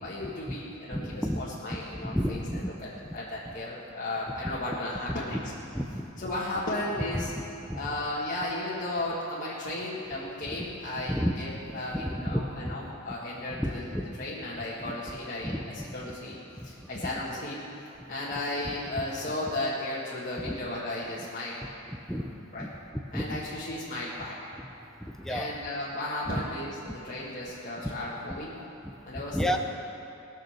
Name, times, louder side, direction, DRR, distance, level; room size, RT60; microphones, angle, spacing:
voice 1, 0.0-5.4 6.2-7.3 7.7-13.8 14.2-16.3 16.6-17.6 18.1-21.6 22.5-22.7 23.1-24.4 25.3-28.5 29.0-29.6, left 1 dB, 35° left, -9 dB, 1.8 m, -35 dB
voice 2, 0.9-1.4 2.0-2.7 3.5-3.6 5.7-6.1 7.1-7.3 7.7-7.8 10.2-10.6 11.1-11.4 11.7-12.9 13.5-14.1 14.8-15.0 15.4-15.9 16.6-16.7 17.0-17.1 20.4-20.5 21.9-22.3 22.6-22.7 23.1-23.4 25.2-25.5 26.3-26.4 28.3-28.4 28.8-28.9 29.3-29.6, equal, ahead, 4 dB, 0.6 m, -32 dB
20.0 x 6.7 x 6.6 m, 2.8 s
head